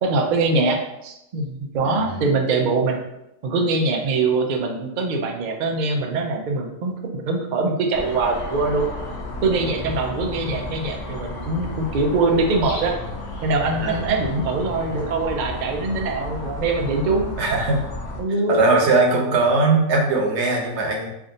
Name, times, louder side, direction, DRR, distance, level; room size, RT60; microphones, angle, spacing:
voice 1, 0.0-3.0 3.4-8.9 9.4-13.0 13.4-17.7 18.2-18.7, right 3 dB, 75° right, 2 dB, 0.4 m, -23 dB
voice 2, 1.9-2.3 13.8-14.2 17.4-17.8 18.5-21.1, right 3 dB, 60° right, 1 dB, 1.0 m, -20 dB
sound 1, 7.9-18.2, left 2 dB, 65° left, 1.0 m, -33 dB
3.5 x 2.5 x 3.8 m, 0.87 s
omnidirectional pair, 1.4 m